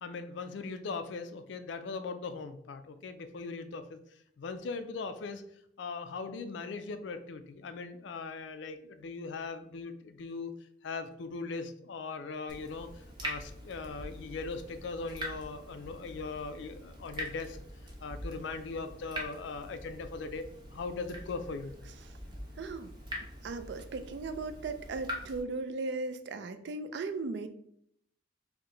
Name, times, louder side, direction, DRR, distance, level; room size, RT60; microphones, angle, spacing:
voice 1, 0.0-4.0 4.4-5.4 5.8-17.6 18.0-20.4 20.7-21.7, left 4 dB, 65° left, 9 dB, 0.4 m, -39 dB
Water tap faucet / Drip, 12.5-25.4, equal, 25° right, 0.7 m, -44 dB
voice 2, 22.6-22.9 23.4-27.5, right 3 dB, 60° right, 10 dB, 0.3 m, -37 dB
4.6 x 2.1 x 3.8 m, 0.71 s
head